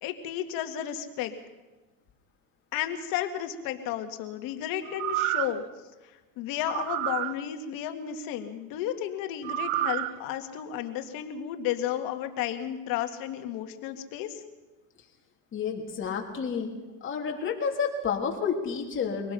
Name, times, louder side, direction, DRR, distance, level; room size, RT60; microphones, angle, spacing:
voice 1, 0.0-1.3 2.7-5.6 6.4-14.4, left 11 dB, 55° left, 6 dB, 2.2 m, -33 dB
sound 1, 4.8-5.6 6.7-7.3 9.4-10.1 10.6-10.7, right 14 dB, 70° right, 1.1 m, -29 dB
voice 2, 15.5-16.7 17.0-19.3, left 6 dB, 30° left, 1 dB, 3.3 m, -30 dB
24.0 x 18.5 x 5.8 m, 1.2 s
supercardioid pair, 130°, 41 cm